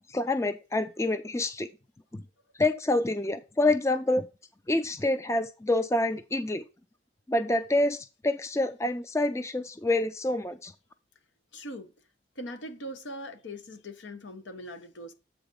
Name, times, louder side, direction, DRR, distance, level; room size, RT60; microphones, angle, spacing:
voice 1, 0.1-1.7 2.1-2.2 2.6-4.3 4.7-6.6 7.3-10.7, left 2 dB, 15° left, 0.4 m, -27 dB
voice 2, 11.5-11.9 12.4-15.1, equal, 80° left, 1.1 m, -41 dB
8.0 x 4.0 x 5.2 m
head